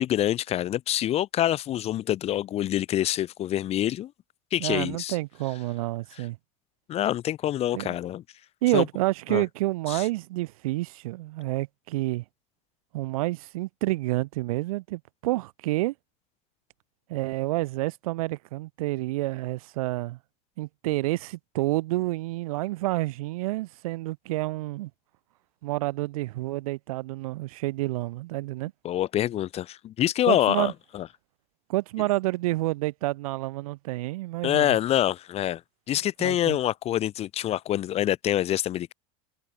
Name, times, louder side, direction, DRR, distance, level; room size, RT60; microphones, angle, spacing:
voice 1, 0.0-4.1 4.5-5.2 6.9-8.2 8.7-8.9 9.3-9.4 9.9-10.0 28.8-31.1 34.4-35.6 35.9-38.9, left 12 dB, 35° left, 2.2 m, -26 dB
voice 2, 4.6-6.4 7.7-7.9 8.6-12.2 12.9-15.9 17.1-20.2 20.6-24.9 25.6-28.7 30.3-30.7 31.7-34.8 36.2-36.6, right 19 dB, 85° right, 4.5 m, -29 dB
supercardioid pair, 145°, 18 cm